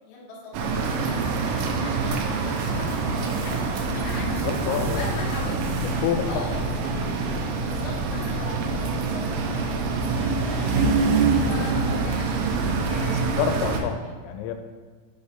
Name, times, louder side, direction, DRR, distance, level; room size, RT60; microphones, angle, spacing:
voice 1, 0.0-4.4 4.9-5.6 6.3-6.6 7.6-11.0 11.4-12.4 12.8-13.4, left 2 dB, 65° left, -5 dB, 1.9 m, -39 dB
sound 1, 0.5-13.8, right 4 dB, 90° right, 2.5 m, -25 dB
sound 2, 2.3-8.8, right 3 dB, 75° right, 2.8 m, -41 dB
voice 2, 4.2-5.1 5.8-6.4 13.0-14.6, left 9 dB, 85° left, 7 dB, 3.2 m, -29 dB
7.2 x 4.1 x 5.3 m, 1.5 s
omnidirectional pair, 5.9 m